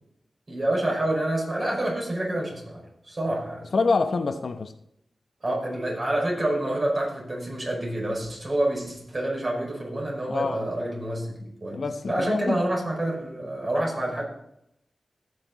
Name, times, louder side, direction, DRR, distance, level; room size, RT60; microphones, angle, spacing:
voice 1, 0.5-3.6 5.4-14.3, right 1 dB, 40° right, 5.4 m, -28 dB
voice 2, 3.7-4.7 10.3-10.7 11.7-12.6, left 4 dB, 65° left, 0.9 m, -26 dB
17.0 x 6.8 x 4.0 m
wide cardioid pair, 70°, 0 cm